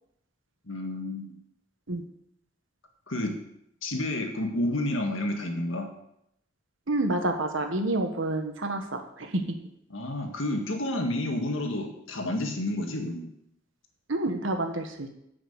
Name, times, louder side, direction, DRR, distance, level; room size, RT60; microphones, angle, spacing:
voice 1, 0.7-1.4 3.1-3.3 3.8-5.9 9.9-13.3, left 1 dB, 80° left, 3 dB, 1.8 m, -30 dB
voice 2, 6.9-9.4 14.1-15.1, right 2 dB, 75° right, 5 dB, 1.4 m, -28 dB
8.2 x 6.0 x 8.0 m, 0.76 s
head